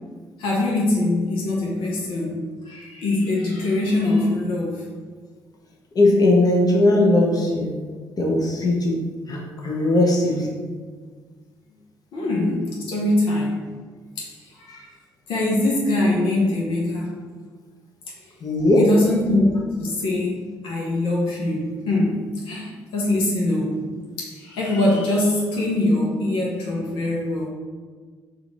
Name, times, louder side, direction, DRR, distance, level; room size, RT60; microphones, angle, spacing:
voice 1, 0.4-2.4 2.6-4.8 12.1-13.6 14.2-14.9 15.3-17.2 18.8-19.5 19.8-20.4 20.6-22.2 22.4-23.8 24.2-27.5, left 2 dB, 70° left, -4 dB, 0.9 m, -23 dB
voice 2, 5.9-7.7 8.2-9.0 9.3-10.5 18.4-18.8, left 2 dB, 40° left, -1 dB, 1.0 m, -18 dB
4.3 x 2.6 x 4.1 m, 1.5 s
hypercardioid pair, 50°, 10 cm